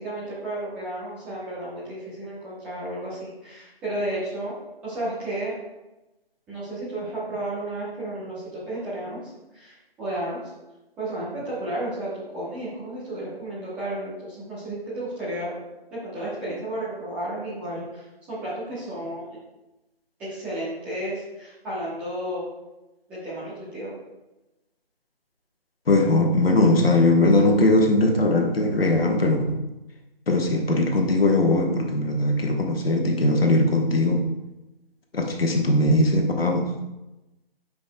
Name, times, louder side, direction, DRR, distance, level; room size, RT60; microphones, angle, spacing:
voice 1, 0.0-4.6 4.8-5.5 6.5-9.2 9.5-10.4 11.0-15.5 15.9-19.2 20.2-22.5 23.1-23.9, right 1 dB, 5° right, -10 dB, 0.8 m, -32 dB
voice 2, 25.9-29.6 30.3-34.2 35.1-36.7, left 2 dB, 70° left, 2 dB, 1.3 m, -20 dB
10.5 x 5.1 x 2.2 m, 0.99 s
figure-of-eight pair, 155°, 31 cm